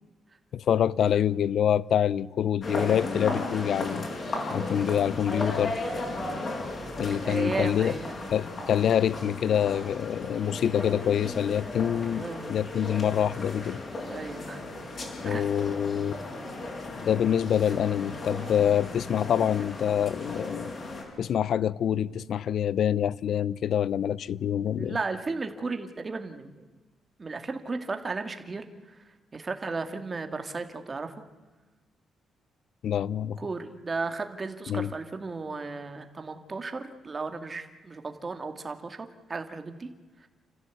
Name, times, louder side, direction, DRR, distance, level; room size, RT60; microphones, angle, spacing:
voice 1, 0.5-4.0 4.5-5.8 7.0-8.0 8.3-13.8 15.2-16.1 16.9-20.7 21.2-25.0 32.8-33.4 34.7-34.9, left 9 dB, 60° left, 0.6 m, -26 dB
sound 1, 2.6-21.0, left 2 dB, 35° left, 6.2 m, -35 dB
voice 2, 6.2-6.5 7.2-8.2 12.2-12.5 14.1-14.6 15.2-15.5 24.7-26.6 27.2-29.0 29.3-31.1 33.4-39.9 40.2-40.3, right 3 dB, 25° right, 2.1 m, -35 dB
29.5 x 15.0 x 8.4 m
cardioid pair, 150°, 0 cm